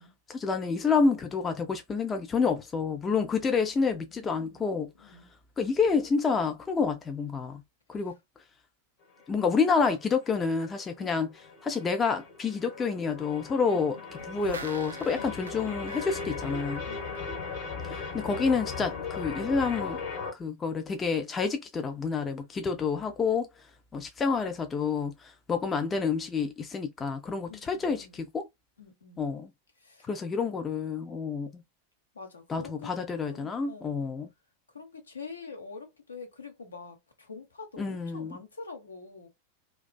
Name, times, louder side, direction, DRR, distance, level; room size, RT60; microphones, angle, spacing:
voice 1, 0.3-4.9 5.6-7.6 7.9-8.2 9.3-11.3 11.6-14.0 14.3-16.8 17.8-20.0 20.3-23.5 23.9-28.5 29.2-29.5 30.1-31.6 32.5-34.3 37.8-38.4, left 5 dB, 20° left, 0.4 m, -28 dB
voice 2, 3.9-5.3 11.0-11.2 13.7-14.1 15.2-15.3 16.8-17.8 27.5-28.2 28.8-29.3 29.8-30.1 32.1-32.9 33.2-34.1 34.7-39.3, left 4 dB, 75° left, 0.8 m, -46 dB
sound 1, 9.0-20.3, left 5 dB, 45° left, 1.0 m, -38 dB
sound 2, 14.2-17.7 18.0-18.1, right 3 dB, 70° right, 0.5 m, -45 dB
2.4 x 2.3 x 2.2 m
figure-of-eight pair, 90°, 0 cm